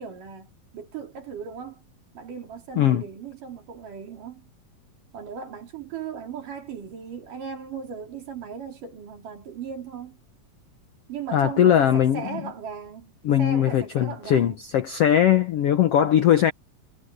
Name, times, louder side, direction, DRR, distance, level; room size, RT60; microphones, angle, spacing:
voice 1, 0.0-1.8 2.1-4.5 5.1-10.2 11.1-13.1 13.4-14.6, right 6 dB, 60° right, 5.0 m, -37 dB
voice 2, 11.3-12.4 13.2-16.5, left 10 dB, 90° left, 1.3 m, -20 dB
omnidirectional pair, 4.2 m